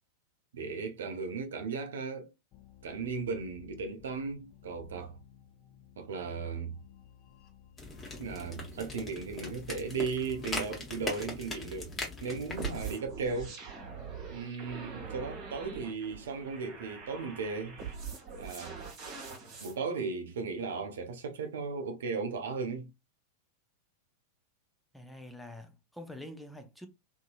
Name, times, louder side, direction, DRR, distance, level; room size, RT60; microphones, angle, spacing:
voice 1, 0.5-2.3 2.8-5.2 6.0-6.7 8.2-13.6 14.3-17.8 18.4-18.8 19.6-22.9, right 4 dB, 60° right, 0.5 m, -36 dB
sound 1, 2.5-10.5, left 10 dB, 35° left, 0.8 m, -56 dB
sound 2, 7.8-12.9, left 2 dB, 20° left, 1.1 m, -40 dB
sound 3, 12.6-19.7, right 5 dB, 40° right, 1.1 m, -43 dB
voice 2, 24.9-26.9, left 1 dB, ahead, 0.5 m, -46 dB
2.7 x 2.6 x 2.5 m
figure-of-eight pair, 90°, 0 cm